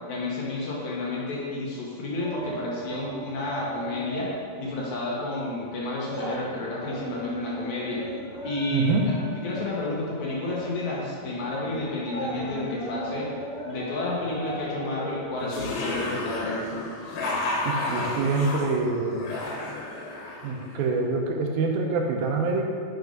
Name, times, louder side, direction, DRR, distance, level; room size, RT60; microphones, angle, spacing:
voice 1, 0.1-4.3 4.6-8.1 8.4-13.3 13.7-16.6, left 2 dB, 65° left, -5 dB, 2.2 m, -31 dB
sound 1, 2.2-4.6 4.9-5.1 5.5-16.5 16.8-16.9, right 1 dB, 40° left, 0.5 m, -37 dB
voice 2, 8.7-9.0 17.7-19.3 20.4-22.6, right 4 dB, 85° right, 2 dB, 2.7 m, -25 dB
sound 2, 15.4-20.9, left 2 dB, 85° left, 2.9 m, -32 dB
6.6 x 5.8 x 5.2 m, 2.2 s
omnidirectional pair, 4.1 m